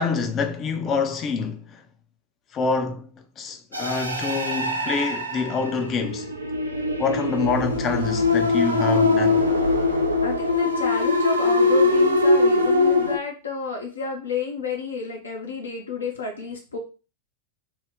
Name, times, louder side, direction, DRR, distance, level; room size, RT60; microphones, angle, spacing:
voice 1, 0.0-1.8 2.5-3.1 3.4-6.3 7.0-9.4, left 5 dB, 30° left, 0.4 m, -26 dB
sound 1, 3.7-13.2, left 2 dB, 80° right, 0.4 m, -22 dB
voice 2, 10.2-16.8, left 4 dB, 75° left, 0.6 m, -31 dB
2.3 x 2.1 x 3.5 m
figure-of-eight pair, 90°, 0 cm